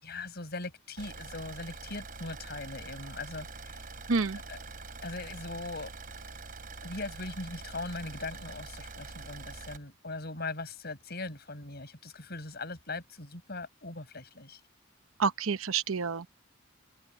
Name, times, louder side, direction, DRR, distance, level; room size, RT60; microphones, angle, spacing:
voice 1, 0.0-3.8 4.5-4.6 5.0-5.9 6.8-14.6, left 3 dB, 50° left, 6.2 m, -40 dB
Car / Idling, 1.0-9.8, right 3 dB, 45° right, 3.5 m, -45 dB
voice 2, 4.1-4.4 15.2-16.3, right 5 dB, 85° right, 0.9 m, -29 dB
head